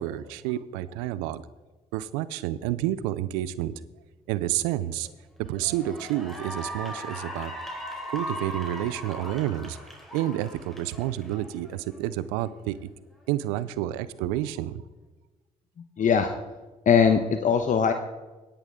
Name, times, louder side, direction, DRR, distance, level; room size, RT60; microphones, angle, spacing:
voice 1, 0.0-1.4 1.9-3.7 4.3-5.1 5.5-7.5 8.1-9.8 10.1-12.9 13.3-14.7, right 13 dB, 90° right, 17 dB, 0.5 m, -29 dB
Cheering / Applause, 4.8-5.1 5.5-12.0, equal, ahead, 3.8 m, -38 dB
voice 2, 15.8-16.3 16.9-17.9, left 6 dB, 55° left, 7 dB, 1.0 m, -21 dB
17.0 x 10.0 x 3.7 m, 1.2 s
hypercardioid pair, 50°, 16 cm